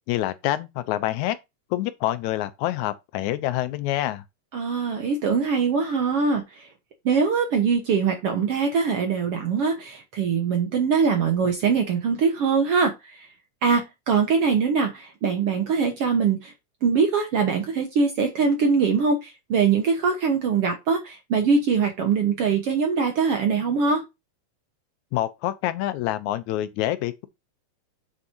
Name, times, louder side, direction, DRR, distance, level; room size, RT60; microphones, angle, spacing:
voice 1, 0.1-1.4 1.7-4.2 25.1-27.3, left 14 dB, 85° left, 2.1 m, -26 dB
voice 2, 4.5-6.7 7.1-13.3 13.6-16.5 16.8-24.0, right 5 dB, 60° right, 2.0 m, -22 dB
8.1 x 6.2 x 2.8 m
omnidirectional pair, 3.3 m